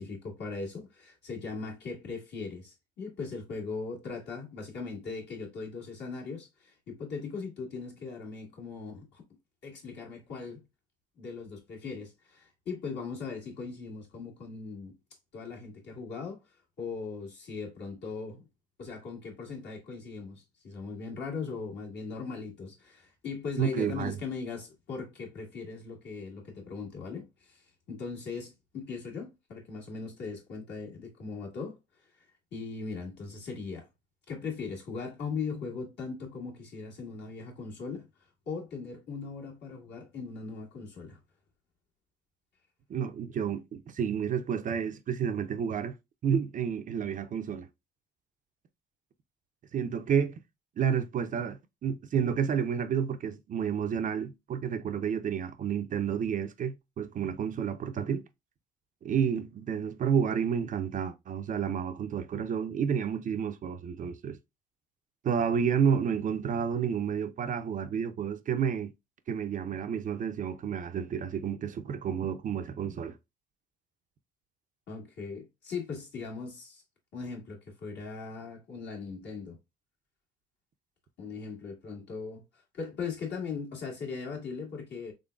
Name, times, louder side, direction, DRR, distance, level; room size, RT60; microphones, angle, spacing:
voice 1, 0.0-9.2 9.6-10.6 11.2-14.9 15.3-16.4 16.8-18.5 18.8-31.8 32.5-33.9 34.3-38.1 38.5-41.2 74.9-76.8 77.1-79.6 81.2-85.1, left 4 dB, 60° left, 1.8 m, -39 dB
voice 2, 23.6-24.2 42.9-45.9 46.2-47.7 49.7-50.4 50.8-58.2 59.0-64.4 65.2-68.9 69.3-73.2, right 7 dB, 40° right, 0.5 m, -30 dB
3.8 x 3.3 x 2.3 m
supercardioid pair, 80°, 20 cm